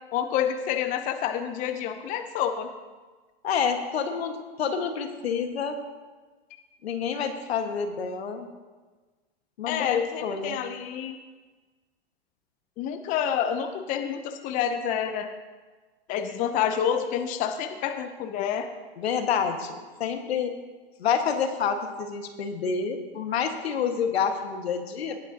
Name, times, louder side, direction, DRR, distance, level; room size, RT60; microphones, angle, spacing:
voice 1, 0.1-2.7 9.7-11.2 12.8-15.3 16.1-18.7, left 9 dB, 25° left, 7 dB, 0.6 m, -28 dB
voice 2, 3.4-5.8 6.8-8.5 9.6-10.6 19.0-20.5 21.0-25.2, left 6 dB, 80° left, 5 dB, 1.5 m, -28 dB
18.0 x 9.1 x 2.8 m, 1.3 s
hypercardioid pair, 135°, 31 cm